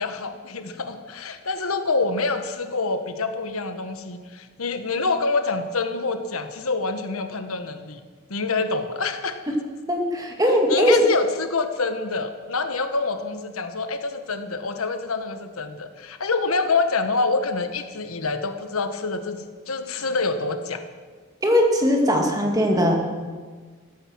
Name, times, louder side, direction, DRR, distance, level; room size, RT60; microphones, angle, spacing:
voice 1, 0.0-8.0 8.3-9.6 10.5-20.8, left 3 dB, 85° left, 8 dB, 1.3 m, -26 dB
voice 2, 9.9-11.0 21.4-22.9, equal, 15° right, 1 dB, 2.2 m, -20 dB
15.0 x 14.0 x 6.2 m, 1.5 s
head